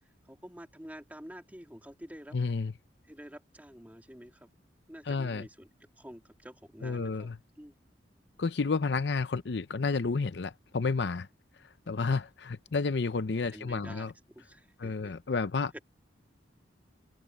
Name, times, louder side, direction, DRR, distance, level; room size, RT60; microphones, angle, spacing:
voice 1, 0.3-2.4 3.1-4.5 4.9-5.7 6.0-7.3 7.6-7.7 13.5-15.1, equal, 10° right, 2.7 m, -48 dB
voice 2, 2.3-2.7 5.1-5.5 6.8-7.4 8.4-11.3 11.9-14.1 14.8-15.7, left 4 dB, 70° left, 0.6 m, -31 dB
head